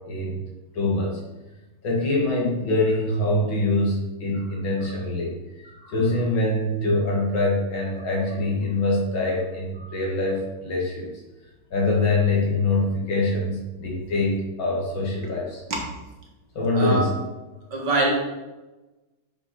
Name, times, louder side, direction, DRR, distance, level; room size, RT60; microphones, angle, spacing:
voice 1, 0.1-0.4 0.7-1.2 1.8-11.1 11.7-15.6 16.5-17.1, left 2 dB, 65° left, -3 dB, 2.7 m, -24 dB
voice 2, 16.8-17.1 17.7-18.2, right 2 dB, 55° right, -1 dB, 2.1 m, -25 dB
6.7 x 5.7 x 5.8 m, 1.1 s
omnidirectional pair, 2.4 m